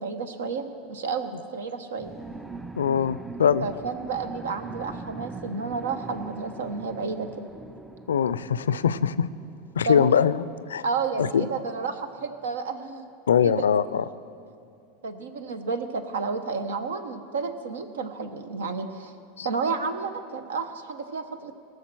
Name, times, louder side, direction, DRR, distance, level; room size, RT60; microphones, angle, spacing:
voice 1, 0.0-2.1 3.6-7.3 9.8-10.1 10.8-13.1 13.4-13.7 15.0-19.1 19.4-21.5, right 4 dB, 80° right, 9 dB, 0.9 m, -31 dB
sound 1, 2.0-10.1, right 3 dB, 10° right, 0.5 m, -42 dB
voice 2, 2.8-3.7 8.1-9.3 9.8-10.8 11.2-11.5 13.3-14.0 19.4-19.5, left 7 dB, 85° left, 16 dB, 0.4 m, -22 dB
18.5 x 6.6 x 6.1 m, 2.6 s
hypercardioid pair, 90°, 0 cm